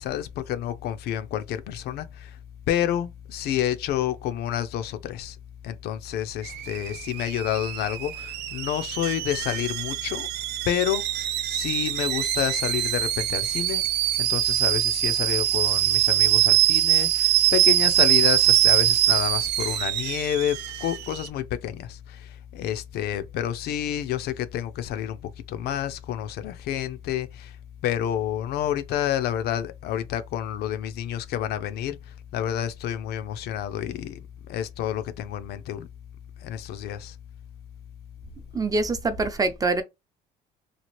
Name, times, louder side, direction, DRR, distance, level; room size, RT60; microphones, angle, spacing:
voice 1, 0.0-2.4 2.7-5.4 5.6-10.3 10.6-13.9 14.2-27.6 27.8-34.2 34.5-35.9 36.4-37.2, left 11 dB, 70° left, 0.4 m, -29 dB
Alarm / Boiling, 6.4-21.3, right 13 dB, 80° right, 0.4 m, -23 dB
voice 2, 38.5-39.8, right 3 dB, 20° right, 0.5 m, -24 dB
2.9 x 2.4 x 3.0 m
cardioid pair, 110°, 17 cm